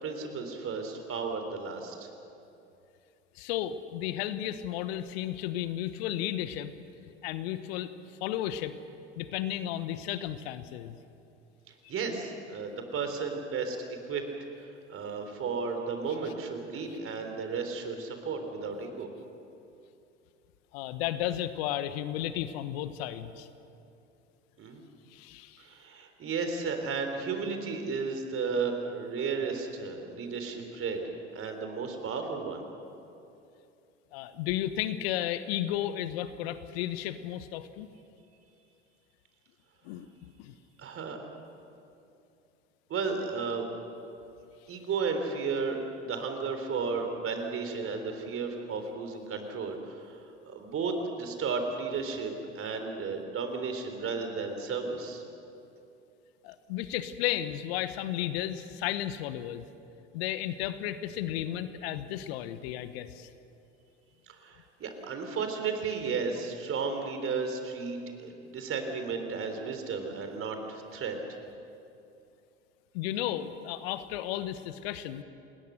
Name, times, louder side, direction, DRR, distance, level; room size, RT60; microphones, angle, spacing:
voice 1, 0.0-2.1 11.7-14.2 14.6-19.1 24.6-24.8 25.6-31.0 31.3-32.6 40.8-41.2 42.9-43.7 44.7-55.2 64.3-71.2, right 5 dB, 40° right, 6 dB, 3.8 m, -34 dB
voice 2, 3.4-6.7 7.0-7.9 8.2-8.8 9.2-10.9 20.7-23.5 25.1-25.6 34.1-37.9 39.8-40.1 40.4-40.5 56.4-59.7 60.1-63.3 72.9-75.2, left 12 dB, 60° left, 12 dB, 1.2 m, -33 dB
27.5 x 20.5 x 6.5 m, 2.7 s
figure-of-eight pair, 70°, 34 cm